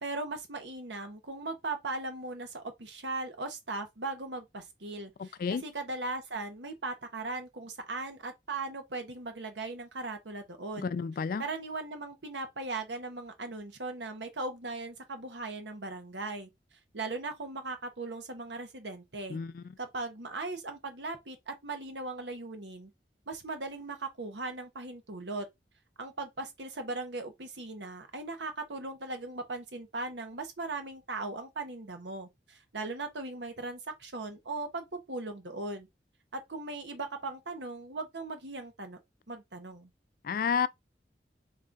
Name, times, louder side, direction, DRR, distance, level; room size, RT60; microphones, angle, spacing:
voice 1, 0.0-10.9 11.4-16.5 16.9-19.4 19.8-22.9 23.3-25.5 26.0-35.9 36.3-39.0 39.3-39.9, right 3 dB, 85° right, 1.1 m, -38 dB
voice 2, 5.2-5.6 10.8-11.4 19.3-19.6 40.2-40.7, left 6 dB, 50° left, 0.3 m, -31 dB
3.4 x 3.1 x 3.9 m
head